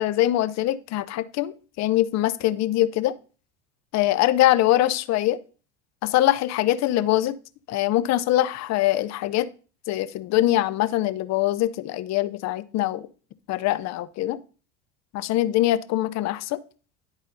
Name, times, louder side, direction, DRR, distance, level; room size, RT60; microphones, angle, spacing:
voice 1, 0.0-3.1 3.9-5.4 6.0-7.4 7.7-9.5 9.9-13.1 13.5-14.4 15.1-16.6, left 14 dB, 55° left, 0.7 m, -23 dB
10.5 x 4.1 x 3.9 m
supercardioid pair, 90°, 33 cm